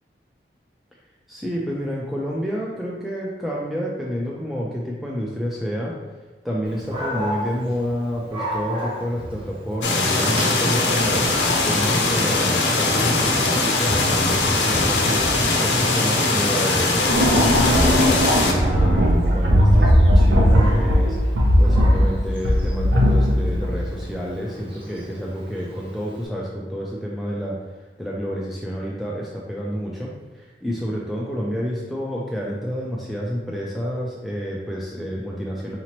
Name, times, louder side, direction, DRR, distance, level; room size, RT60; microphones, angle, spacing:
voice 1, 1.3-6.0 6.4-11.2 11.6-27.6 28.0-35.8, equal, ahead, -5 dB, 0.4 m, -29 dB
Dog, 6.6-26.2, equal, 30° right, 1.0 m, -34 dB
sound 1, 9.8-18.5, left 2 dB, 80° left, 0.6 m, -21 dB
sound 2, 17.1-24.0, equal, 70° right, 0.7 m, -17 dB
4.9 x 2.9 x 2.9 m, 1.3 s
head